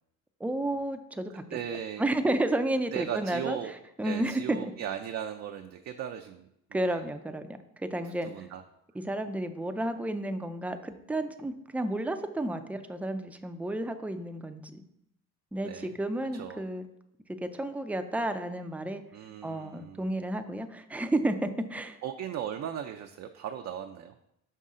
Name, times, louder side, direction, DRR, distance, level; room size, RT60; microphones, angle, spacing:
voice 1, 0.4-1.4 2.0-3.6 4.0-4.7 6.7-7.5 7.8-8.5 9.0-14.8 15.5-16.9 17.3-19.0 19.4-22.0, right 1 dB, 5° right, 8 dB, 0.5 m, -31 dB
voice 2, 1.5-2.0 2.9-3.7 4.0-7.0 8.0-8.6 15.6-15.9 16.3-16.6 19.1-20.1 22.0-24.1, right 9 dB, 50° right, 4 dB, 0.5 m, -37 dB
5.5 x 5.3 x 3.7 m, 0.79 s
cardioid pair, 100°, 33 cm